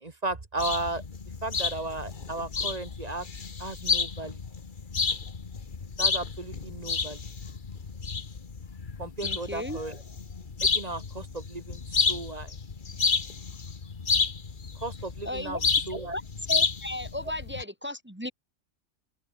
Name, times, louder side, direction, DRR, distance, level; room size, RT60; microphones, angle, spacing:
voice 1, 0.0-1.0 1.4-3.3 3.6-4.4 6.0-7.2 9.0-10.0 10.6-12.5 14.8-15.6 15.9-16.1, right 2 dB, 30° right, 1.8 m, -35 dB
sound 1, 0.6-17.6, left 5 dB, 40° left, 1.5 m, -31 dB
voice 2, 9.2-9.8 15.2-15.6 16.1-16.2 16.5-18.3, left 1 dB, 10° right, 1.3 m, -35 dB
omnidirectional pair, 1.3 m